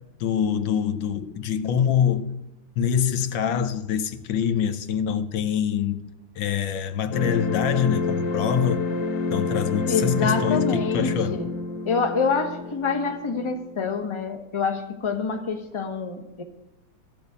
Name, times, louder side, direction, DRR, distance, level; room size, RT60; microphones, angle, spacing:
voice 1, 0.2-2.3 2.8-6.0 6.4-8.8 9.3-11.4, left 8 dB, 90° left, 1.7 m, -25 dB
sound 1, 7.1-14.1, left 3 dB, 65° left, 1.6 m, -29 dB
voice 2, 9.9-11.5 11.8-16.4, left 5 dB, 20° left, 1.0 m, -26 dB
13.5 x 7.2 x 8.0 m
omnidirectional pair, 2.0 m